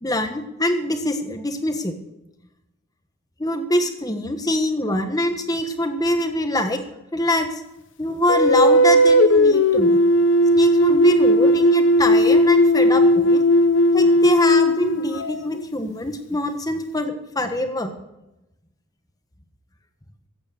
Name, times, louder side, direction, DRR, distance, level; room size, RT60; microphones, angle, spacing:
voice 1, 0.0-1.9 3.4-6.8 7.1-7.6 8.0-10.0 10.5-13.4 13.9-17.9, left 1 dB, 20° left, 7 dB, 1.2 m, -24 dB
sound 1, 8.3-15.6, equal, 60° left, 0.7 m, -16 dB
14.5 x 8.6 x 6.4 m, 0.92 s
head